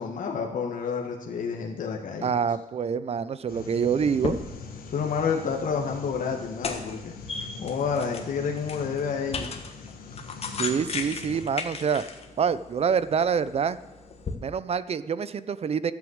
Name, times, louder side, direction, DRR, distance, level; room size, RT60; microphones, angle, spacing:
voice 1, 0.0-2.3 4.8-7.1 7.6-9.5, left 6 dB, 65° left, 2 dB, 1.5 m, -29 dB
voice 2, 2.2-4.3 10.5-12.0 12.4-13.8 14.4-15.9, right 6 dB, 45° right, 16 dB, 0.6 m, -26 dB
sound 1, 3.5-11.5, left 5 dB, 85° left, 1.7 m, -43 dB
sound 2, 4.0-14.4, left 4 dB, 45° left, 1.6 m, -37 dB
13.0 x 8.4 x 8.0 m, 1.1 s
wide cardioid pair, 130°, 15 cm